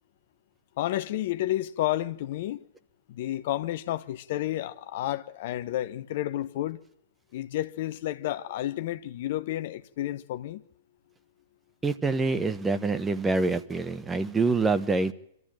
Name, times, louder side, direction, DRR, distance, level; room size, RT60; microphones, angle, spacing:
voice 1, 0.8-2.6 3.1-6.8 7.3-10.6, left 14 dB, 55° left, 1.0 m, -31 dB
voice 2, 11.8-15.1, right 3 dB, 15° right, 1.3 m, -26 dB
25.0 x 14.0 x 9.0 m
hypercardioid pair, 110°, 0 cm